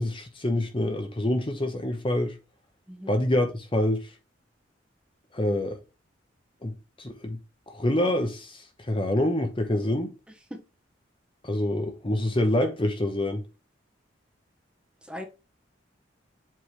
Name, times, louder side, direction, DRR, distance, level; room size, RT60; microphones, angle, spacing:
voice 1, 0.0-2.3 3.1-4.1 5.3-5.8 6.6-6.7 7.0-7.4 7.7-10.1 11.4-13.4, left 1 dB, 25° left, 1.0 m, -26 dB
voice 2, 2.9-3.2 10.5-10.6 15.0-15.2, equal, 5° right, 1.1 m, -38 dB
7.6 x 3.8 x 3.2 m
head